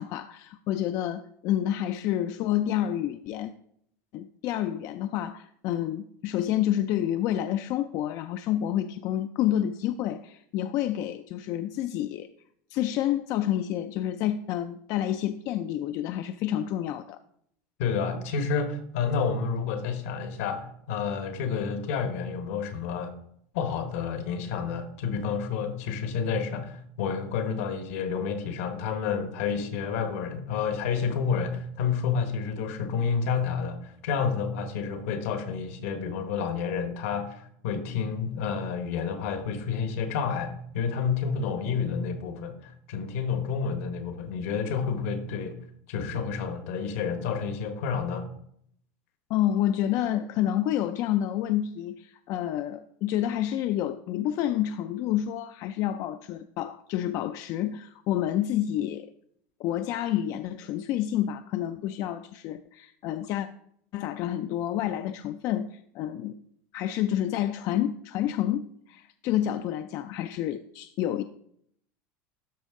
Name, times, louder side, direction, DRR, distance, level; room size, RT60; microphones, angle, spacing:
voice 1, 0.0-3.5 4.1-12.3 12.7-17.2 49.3-59.1 59.6-63.5 63.9-66.4 66.7-71.2, left 11 dB, 55° left, 0.4 m, -29 dB
voice 2, 17.8-23.1 23.5-45.6 45.9-48.3, left 6 dB, 75° left, 1.3 m, -30 dB
12.5 x 5.3 x 3.7 m
supercardioid pair, 125°, 7 cm